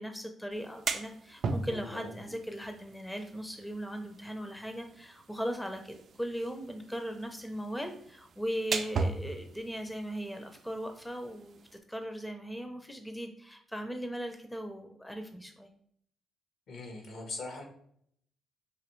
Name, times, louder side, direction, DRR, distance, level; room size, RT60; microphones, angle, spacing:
voice 1, 0.0-11.6 11.9-15.7, equal, 10° left, 5 dB, 0.6 m, -38 dB
sound 1, 0.5-11.8, right 4 dB, 55° right, 0.4 m, -39 dB
voice 2, 1.7-2.1 16.7-17.6, left 2 dB, 70° left, 2 dB, 1.3 m, -41 dB
5.0 x 2.7 x 3.1 m, 0.66 s
cardioid pair, 90°, 0 cm